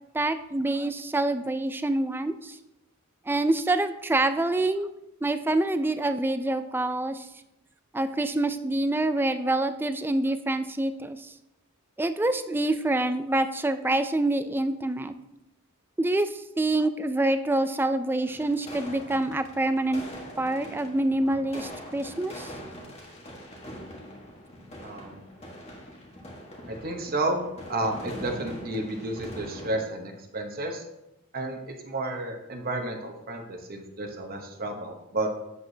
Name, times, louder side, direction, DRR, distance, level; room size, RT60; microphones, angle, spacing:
voice 1, 0.1-2.6 3.3-4.9 5.2-7.3 7.9-11.3 12.0-15.1 16.0-20.0 20.4-22.5, right 2 dB, 10° right, 10 dB, 0.3 m, -26 dB
sound 1, 18.2-29.8, equal, 30° left, 1.4 m, -43 dB
voice 2, 24.8-25.3 26.7-30.8 31.3-35.3, right 2 dB, 45° right, 3 dB, 0.9 m, -31 dB
8.1 x 7.9 x 2.8 m, 0.88 s
head